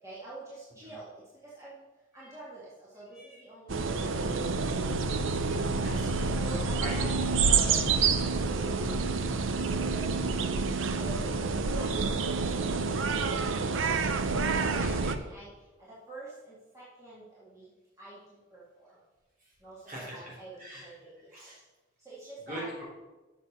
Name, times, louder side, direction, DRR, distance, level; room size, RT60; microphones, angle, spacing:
voice 1, 0.0-1.8 2.1-5.2 6.3-9.4 9.7-10.5 10.9-13.9 14.6-17.7 18.0-19.0 19.6-21.5 22.0-22.7, right 2 dB, 15° right, -9 dB, 2.3 m, -47 dB
sound 1, 3.7-15.1, right 4 dB, 70° right, 0.6 m, -28 dB
voice 2, 4.9-5.2 5.8-6.2 6.8-7.0 13.8-14.0 14.6-15.1 19.9-20.9 21.3-21.6 22.5-22.8, right 1 dB, 40° right, -4 dB, 3.7 m, -42 dB
7.5 x 6.9 x 6.0 m, 1.1 s
head